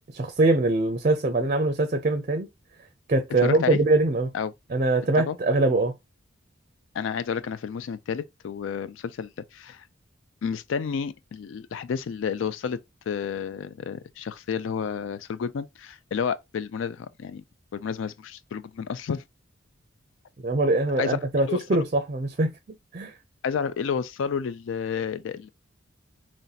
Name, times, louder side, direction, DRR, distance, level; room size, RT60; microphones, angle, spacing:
voice 1, 0.1-2.5 3.1-4.3 4.7-5.9 20.4-22.5 22.9-23.1, right 2 dB, 40° right, 0.5 m, -23 dB
voice 2, 3.4-3.8 4.3-4.5 5.1-5.4 6.9-9.9 10.4-12.8 13.1-17.4 17.7-19.2 21.0-21.2 21.5-21.8 23.4-25.5, left 6 dB, 75° left, 0.4 m, -30 dB
3.0 x 2.8 x 3.9 m
head